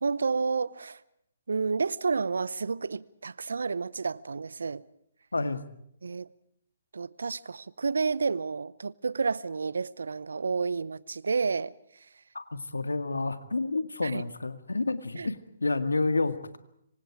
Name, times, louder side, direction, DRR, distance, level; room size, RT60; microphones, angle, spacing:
voice 1, 0.0-1.0 1.5-4.8 6.0-6.3 6.9-11.7 14.0-14.2 15.2-15.3, right 4 dB, 75° right, 0.8 m, -30 dB
voice 2, 5.3-5.6 12.3-16.6, left 3 dB, 85° left, 1.9 m, -29 dB
26.5 x 24.5 x 4.9 m
figure-of-eight pair, 135°, 0 cm